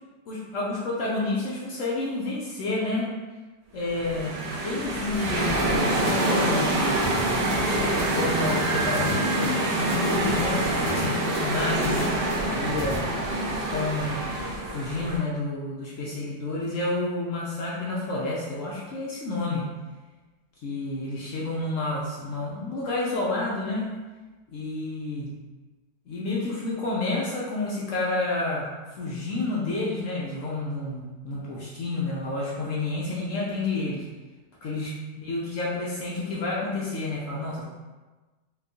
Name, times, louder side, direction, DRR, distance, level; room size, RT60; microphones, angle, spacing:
voice 1, 0.3-3.1 3.7-4.3 4.6-7.1 7.6-12.1 12.5-13.1 13.5-14.2 14.7-19.6 20.6-23.9 24.5-25.3 26.1-34.1 34.6-34.9 35.2-37.6, left 2 dB, 75° left, -5 dB, 0.7 m, -30 dB
sound 1, 3.8-15.2, right 1 dB, 75° right, 1.2 m, -26 dB
sound 2, 5.6-13.0, left 1 dB, 55° left, 1.5 m, -36 dB
4.2 x 2.2 x 2.6 m, 1.2 s
omnidirectional pair, 1.9 m